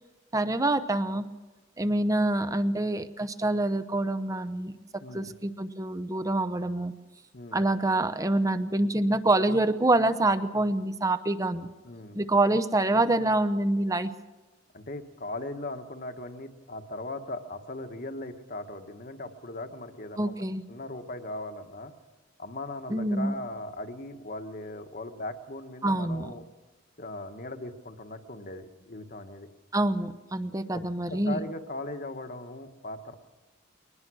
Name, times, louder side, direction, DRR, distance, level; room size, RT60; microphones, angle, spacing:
voice 1, 0.3-1.3 1.8-6.9 7.5-11.7 12.1-14.1 20.2-20.7 22.9-23.3 25.8-26.3 29.7-31.4, right 2 dB, 15° right, 12 dB, 0.8 m, -26 dB
voice 2, 5.0-5.3 7.3-7.6 11.8-12.2 14.7-20.3 20.7-21.9 22.4-26.4 27.0-29.5 30.7-33.1, left 2 dB, 45° left, 7 dB, 1.4 m, -39 dB
22.5 x 20.0 x 6.3 m, 1.2 s
head